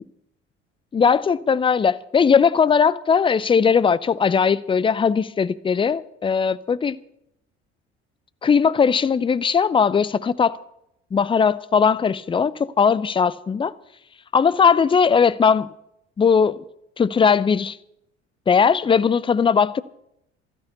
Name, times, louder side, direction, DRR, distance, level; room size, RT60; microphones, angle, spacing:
voice 1, 0.9-7.0 8.4-10.6 11.1-13.7 14.3-15.7 16.2-16.6 17.0-17.8 18.5-19.8, left 6 dB, 15° left, 0.5 m, -19 dB
13.0 x 9.9 x 8.1 m
figure-of-eight pair, 55°, 34 cm